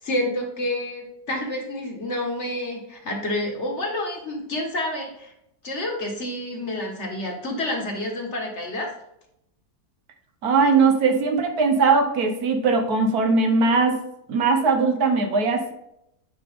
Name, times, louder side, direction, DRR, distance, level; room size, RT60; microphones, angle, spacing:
voice 1, 0.0-5.3 5.6-8.9, left 1 dB, 45° left, 1 dB, 1.8 m, -29 dB
voice 2, 10.4-14.0 14.3-15.7, right 4 dB, 70° right, 5 dB, 1.5 m, -20 dB
9.0 x 5.1 x 3.6 m, 0.79 s
omnidirectional pair, 1.7 m